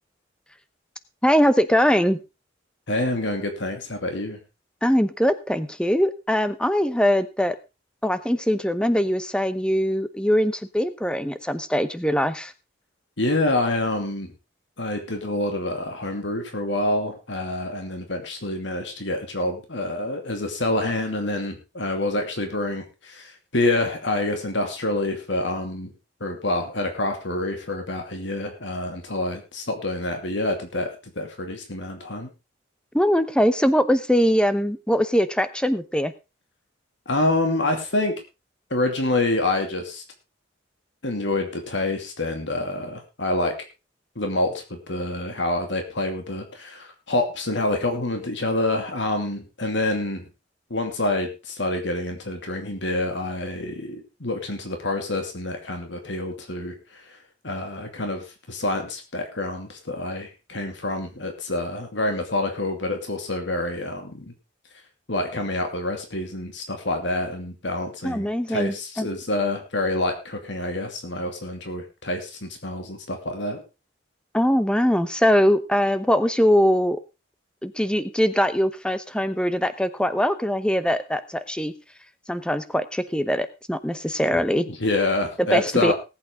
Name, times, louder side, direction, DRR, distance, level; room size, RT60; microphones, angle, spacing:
voice 1, 1.2-2.2 4.8-7.6 8.0-12.5 32.9-36.1 68.0-69.1 74.3-77.0 77.6-81.7 82.3-84.7 85.4-85.9, equal, 5° left, 13 dB, 0.8 m, -22 dB
voice 2, 2.9-4.4 13.2-14.3 14.8-25.9 26.2-32.3 37.1-38.1 38.7-40.0 41.0-43.5 44.2-50.3 50.7-57.0 57.4-64.3 65.1-73.6 84.7-85.9, left 2 dB, 70° left, 4 dB, 2.5 m, -27 dB
19.0 x 8.6 x 3.7 m, 0.28 s
head